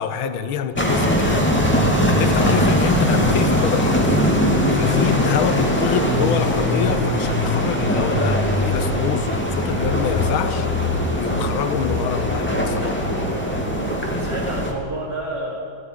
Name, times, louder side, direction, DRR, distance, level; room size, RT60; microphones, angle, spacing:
voice 1, 0.0-1.5 2.1-4.3 4.7-10.7 11.2-13.0, left 8 dB, 75° left, 11 dB, 1.8 m, -26 dB
sound 1, 0.8-14.7, left 1 dB, 5° left, 2.4 m, -20 dB
sound 2, 1.1-7.4, left 2 dB, 25° left, 1.7 m, -33 dB
voice 2, 13.7-15.6, right 1 dB, 50° right, -6 dB, 3.3 m, -30 dB
19.5 x 14.5 x 9.8 m, 2.4 s
omnidirectional pair, 2.4 m